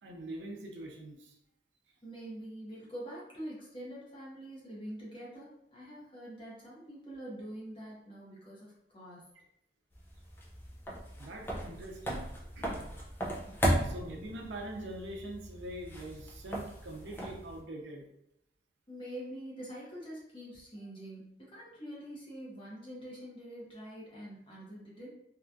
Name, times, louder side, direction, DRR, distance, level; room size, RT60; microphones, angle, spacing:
voice 1, 0.0-1.3 11.2-12.3 12.5-12.8 13.8-18.1, right 1 dB, 90° right, 1 dB, 0.6 m, -43 dB
voice 2, 2.0-9.2 18.9-25.1, right 1 dB, 30° left, -6 dB, 0.9 m, -45 dB
sound 1, 9.9-17.6, equal, 10° left, 0.4 m, -36 dB
2.9 x 2.3 x 2.5 m, 0.82 s
head